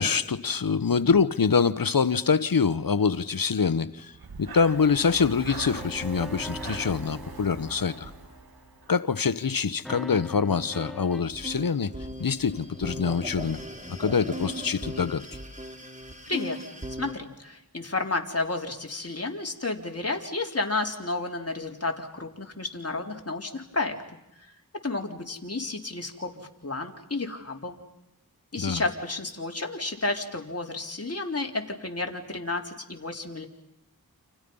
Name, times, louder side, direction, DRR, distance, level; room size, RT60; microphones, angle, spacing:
voice 1, 0.0-4.1 4.4-8.1 8.9-11.9 12.2-13.6 14.0-15.2 28.5-28.8, left 5 dB, 70° left, 15 dB, 1.2 m, -25 dB
Breathing, 4.1-9.0, right 4 dB, 80° right, 2.5 m, -41 dB
sound 1, 5.8-9.0 9.8-11.2, left 1 dB, ahead, 1.2 m, -42 dB
sound 2, 11.1-17.1, equal, 20° right, 3.8 m, -38 dB
voice 2, 16.3-16.6 17.0-24.0 24.8-27.8 28.5-33.5, left 3 dB, 40° left, 2 dB, 3.9 m, -31 dB
29.5 x 27.5 x 5.6 m, 0.86 s
cardioid pair, 40°, 36 cm